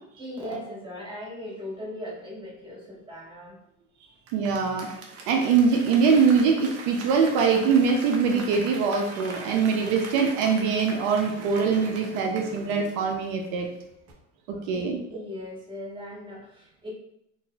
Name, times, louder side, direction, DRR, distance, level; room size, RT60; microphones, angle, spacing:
voice 1, 0.2-3.6 14.7-16.9, left 1 dB, 15° right, -5 dB, 1.4 m, -38 dB
Applause / Crowd, 4.3-13.7 14.1-14.2, right 3 dB, 50° right, 0.8 m, -41 dB
voice 2, 4.3-4.9 5.3-13.7 14.5-15.0, right 5 dB, 80° right, 2 dB, 0.7 m, -23 dB
4.0 x 2.5 x 2.3 m, 0.79 s
supercardioid pair, 100°, 33 cm